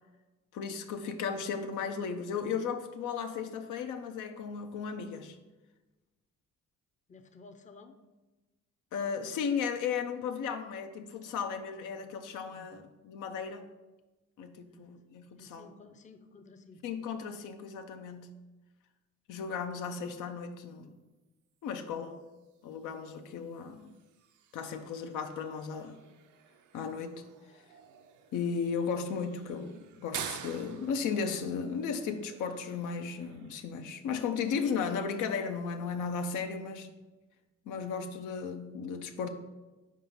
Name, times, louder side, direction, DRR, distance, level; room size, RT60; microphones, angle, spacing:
voice 1, 0.5-5.4 8.9-13.7 14.4-15.7 16.8-18.4 19.3-21.0 21.6-22.2 22.6-23.9 24.5-26.0 26.7-27.2 28.3-36.9 37.7-39.3, left 6 dB, 85° left, 7 dB, 0.6 m, -35 dB
voice 2, 7.1-8.0 12.5-12.9 14.7-14.9 15.4-16.9 36.5-37.0, left 3 dB, 25° left, 7 dB, 0.5 m, -55 dB
sound 1, 21.7-33.6, right 8 dB, 75° right, 0.5 m, -49 dB
4.6 x 3.7 x 5.5 m, 1.1 s
cardioid pair, 90°, 30 cm